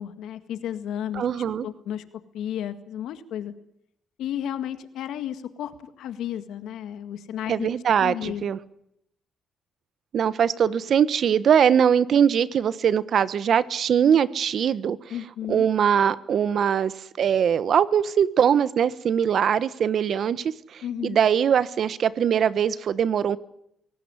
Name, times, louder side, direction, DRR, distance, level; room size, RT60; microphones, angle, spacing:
voice 1, 0.0-2.0 2.3-3.5 4.2-7.7 8.0-8.5 15.1-15.7 20.8-21.2, left 10 dB, 80° left, 10 dB, 1.9 m, -33 dB
voice 2, 1.2-1.7 7.5-8.6 10.1-15.0 15.5-23.4, right 8 dB, 60° right, 16 dB, 1.2 m, -22 dB
23.5 x 18.0 x 9.9 m, 0.78 s
cardioid pair, 90°, 0 cm